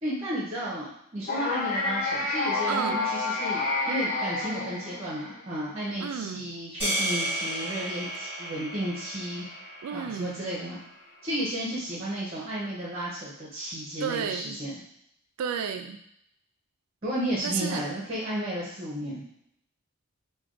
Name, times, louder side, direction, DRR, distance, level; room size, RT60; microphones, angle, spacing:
voice 1, 0.0-9.4 9.9-10.8 11.2-14.8 17.0-19.2, equal, 30° right, -6 dB, 0.8 m, -33 dB
sound 1, 1.3-5.4, left 2 dB, 35° left, 0.4 m, -29 dB
voice 2, 2.7-3.1 6.0-6.5 9.8-10.4 14.0-14.6 15.4-16.0 17.4-17.8, right 7 dB, 75° right, 8 dB, 0.3 m, -32 dB
sound 2, 6.8-11.2, right 1 dB, 10° left, 1.4 m, -33 dB
3.3 x 2.3 x 3.7 m, 0.73 s
head